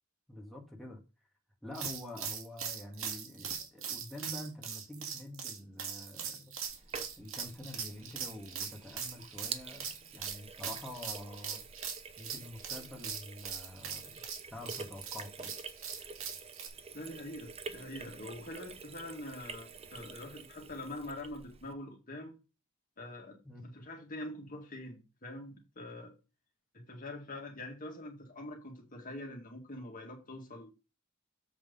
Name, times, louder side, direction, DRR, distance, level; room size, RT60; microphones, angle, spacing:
voice 1, 0.3-1.0 1.6-6.6 7.2-11.6 12.2-15.5 23.4-23.6, left 1 dB, ahead, 1.8 m, -47 dB
sound 1, 1.7-16.7, right 7 dB, 70° right, 2.1 m, -41 dB
Sink (filling or washing), 6.6-21.7, right 5 dB, 30° right, 0.7 m, -48 dB
voice 2, 16.9-22.3 23.0-23.4 23.6-26.1 26.7-30.7, left 1 dB, 40° left, 2.0 m, -44 dB
7.5 x 4.7 x 5.4 m
head